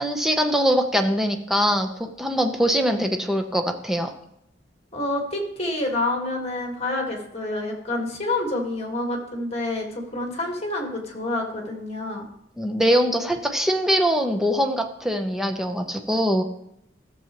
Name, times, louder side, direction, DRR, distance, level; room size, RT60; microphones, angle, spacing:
voice 1, 0.0-4.1 12.6-16.4, equal, ahead, 4 dB, 0.7 m, -22 dB
voice 2, 4.9-12.2, left 2 dB, 35° left, 1 dB, 1.7 m, -28 dB
14.0 x 6.9 x 3.0 m, 0.77 s
head